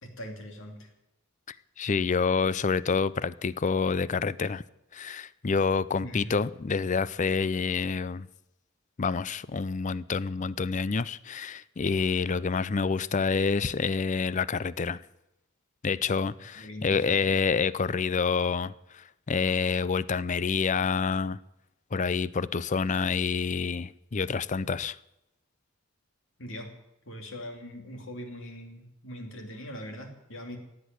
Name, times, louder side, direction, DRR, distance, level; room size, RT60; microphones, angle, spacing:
voice 1, 0.0-0.9 6.0-6.4 16.6-17.2 26.4-26.7 27.1-30.6, equal, 65° left, 2.8 m, -41 dB
voice 2, 1.8-4.6 4.9-8.3 9.0-15.0 15.8-21.4 21.9-25.0, left 5 dB, 35° left, 0.5 m, -28 dB
16.5 x 8.3 x 9.3 m
head